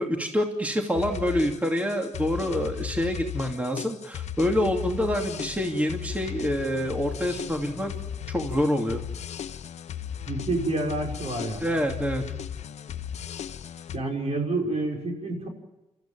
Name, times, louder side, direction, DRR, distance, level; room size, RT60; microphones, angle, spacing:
voice 1, 0.0-7.9 8.3-9.0 11.6-12.2, equal, 10° right, 2 dB, 2.7 m, -26 dB
sound 1, 1.0-14.0, left 9 dB, 80° left, 0.9 m, -36 dB
voice 2, 10.3-11.7 13.9-15.5, right 2 dB, 65° right, 1 dB, 5.8 m, -28 dB
28.0 x 14.5 x 9.1 m, 1.0 s
cardioid pair, 80°, 11 cm